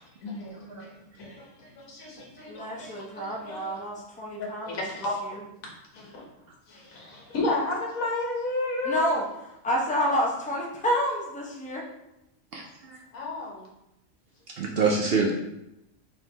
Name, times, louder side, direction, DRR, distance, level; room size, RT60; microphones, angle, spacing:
voice 1, 0.2-3.8 4.4-5.1 5.9-6.2 6.7-9.1 13.1-13.7, left 2 dB, 85° left, -2 dB, 1.6 m, -33 dB
voice 2, 2.5-4.8 8.8-9.2 9.6-11.8, equal, 10° left, -3 dB, 0.6 m, -28 dB
voice 3, 12.5-13.0 14.6-15.3, right 4 dB, 60° right, 0 dB, 0.7 m, -26 dB
4.5 x 3.4 x 3.3 m, 0.88 s
omnidirectional pair, 1.4 m